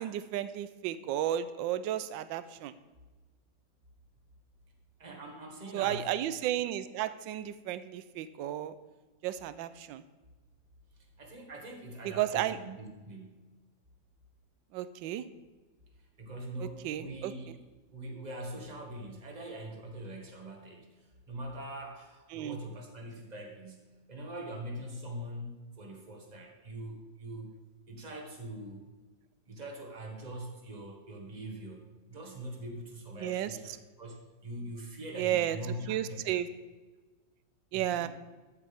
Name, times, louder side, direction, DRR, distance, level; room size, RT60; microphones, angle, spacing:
voice 1, 0.0-2.7 5.7-8.7 9.2-10.0 12.0-12.6 14.7-15.2 16.8-17.3 22.3-22.6 33.2-33.5 35.2-35.6 35.9-36.5 37.7-38.1, right 12 dB, 75° right, 13 dB, 1.3 m, -33 dB
voice 2, 5.0-6.1 11.2-13.4 16.2-17.6 17.9-27.5 27.9-28.8 29.5-36.4 37.7-38.1, right 1 dB, 20° right, 1 dB, 1.7 m, -43 dB
14.0 x 8.3 x 3.5 m, 1.2 s
omnidirectional pair, 2.2 m